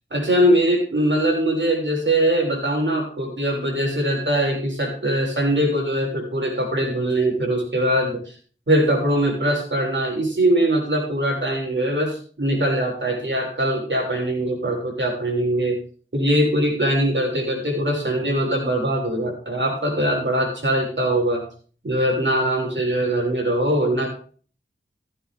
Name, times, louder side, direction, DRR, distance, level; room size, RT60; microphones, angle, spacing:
voice 1, 0.1-8.3 8.7-15.8 16.1-21.4 21.8-24.1, right 1 dB, 65° right, 0 dB, 6.5 m, -22 dB
15.5 x 9.9 x 3.7 m, 0.41 s
wide cardioid pair, 50°, 20 cm